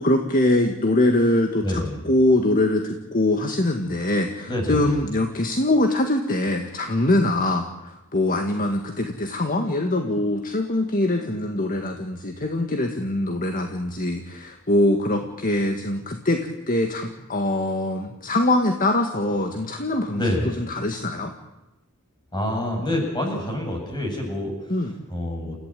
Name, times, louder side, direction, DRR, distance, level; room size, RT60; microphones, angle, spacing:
voice 1, 0.0-20.2 20.6-21.3 24.7-25.0, left 1 dB, 40° left, 5 dB, 1.9 m, -23 dB
voice 2, 1.6-2.1 4.5-5.0 20.1-20.6 22.3-24.7 25.1-25.6, left 1 dB, 20° left, 1 dB, 7.9 m, -27 dB
29.5 x 15.5 x 9.1 m, 0.97 s
head